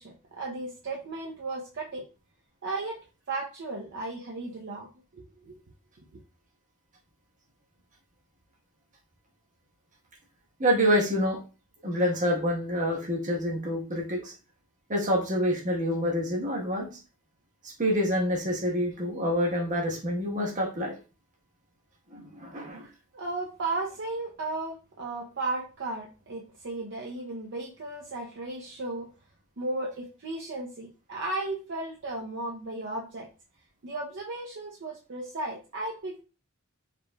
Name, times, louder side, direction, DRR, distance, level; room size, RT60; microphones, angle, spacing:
voice 1, 0.0-2.0 2.6-3.0 3.3-4.9 5.1-5.6 22.8-29.1 29.6-33.3 33.8-36.2, right 2 dB, 60° right, -1 dB, 0.7 m, -35 dB
voice 2, 10.6-11.4 11.8-14.3 14.9-16.9 17.6-20.9 22.1-22.8, equal, 40° right, -1 dB, 1.2 m, -27 dB
5.0 x 3.1 x 2.2 m, 0.33 s
head